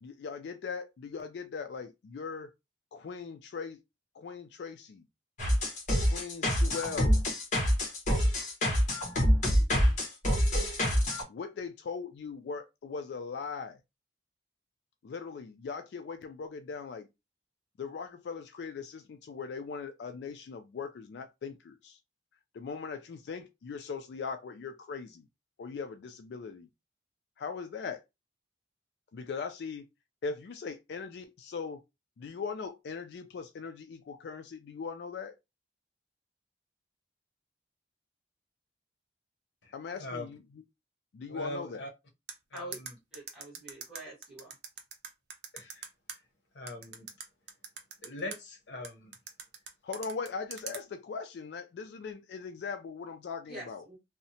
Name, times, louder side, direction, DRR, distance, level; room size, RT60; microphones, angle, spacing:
voice 1, 0.0-2.5 2.9-3.8 4.1-5.0 6.0-7.2 11.3-13.8 15.0-17.1 17.8-22.0 22.5-25.3 25.6-26.7 27.4-28.0 29.1-29.9 30.2-31.8 32.2-35.4 39.7-40.6 41.1-41.8 49.8-53.8, left 5 dB, 70° left, 0.3 m, -40 dB
sound 1, 5.4-11.2, equal, 45° left, 1.0 m, -26 dB
voice 2, 39.6-40.3 41.3-41.9 42.5-43.0 45.5-45.9 46.5-47.1 48.0-49.1, left 1 dB, 85° left, 0.7 m, -41 dB
sound 2, 42.3-46.2 46.7-48.4 48.8-50.8, right 6 dB, 65° right, 0.6 m, -42 dB
voice 3, 43.1-44.5 53.5-54.0, right 1 dB, ahead, 1.5 m, -46 dB
2.7 x 2.0 x 2.7 m
head